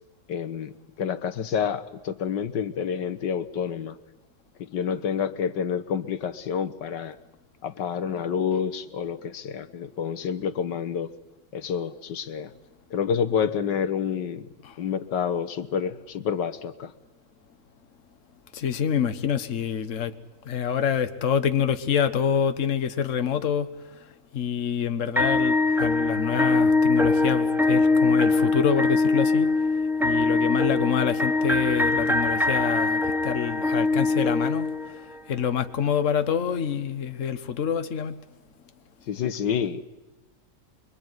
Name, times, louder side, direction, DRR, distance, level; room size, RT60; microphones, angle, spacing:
voice 1, 0.3-0.7 1.0-3.9 4.6-7.2 7.6-11.1 11.5-12.5 12.9-14.5 14.8-16.9 39.1-39.8, left 7 dB, 80° left, 1.8 m, -28 dB
voice 2, 18.5-20.1 20.4-23.7 24.3-29.5 30.0-35.0 35.3-38.2, left 8 dB, 50° left, 1.6 m, -26 dB
sound 1, 25.2-35.2, left 3 dB, ahead, 0.6 m, -22 dB
25.5 x 24.0 x 9.6 m
omnidirectional pair, 1.9 m